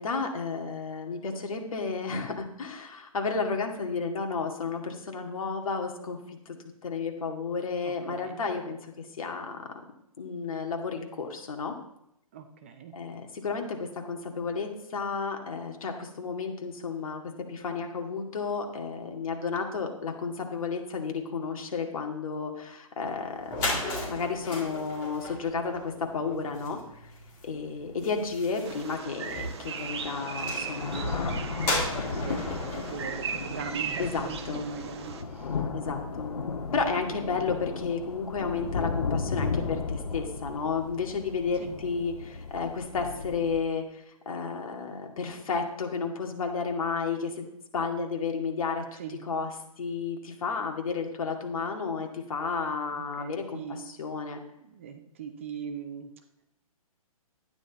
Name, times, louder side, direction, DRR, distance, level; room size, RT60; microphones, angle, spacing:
voice 1, 0.0-6.6 6.8-9.6 10.2-11.7 12.9-17.2 17.5-23.7 24.1-26.8 27.4-31.4 34.0-34.6 35.7-36.3 36.7-49.0 49.3-49.5 49.8-54.4, left 5 dB, 65° left, 2 dB, 2.2 m, -32 dB
voice 2, 7.8-8.4 12.3-13.0 26.3-26.7 31.6-35.6 37.2-37.3 41.6-41.7 49.0-49.2 52.9-53.9 54.7-56.1, right 7 dB, 20° right, 7 dB, 0.5 m, -41 dB
sound 1, 23.1-23.2 23.4-34.2, left 1 dB, 15° left, 2.5 m, -36 dB
sound 2, 27.1-27.2 27.8-27.9 29.2-29.3 29.6-43.6, left 4 dB, 85° left, 1.6 m, -35 dB
Bird vocalization bird call bird song, 28.6-35.2, right 7 dB, 45° right, 1.0 m, -38 dB
12.0 x 9.7 x 4.1 m, 0.80 s
hypercardioid pair, 170°, 19 cm